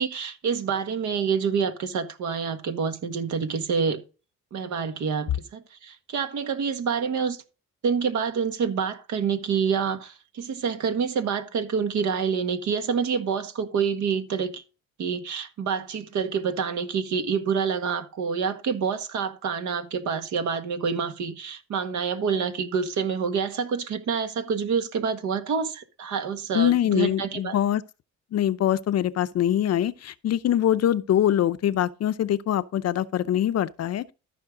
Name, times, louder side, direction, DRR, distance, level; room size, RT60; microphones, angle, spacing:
voice 1, 0.0-4.0 4.5-7.4 7.8-14.6 15.0-27.6, right 6 dB, 70° right, 1.7 m, -27 dB
voice 2, 26.5-27.8 28.3-34.1, left 11 dB, 55° left, 0.6 m, -23 dB
13.5 x 5.7 x 3.8 m
cardioid pair, 90°, 30 cm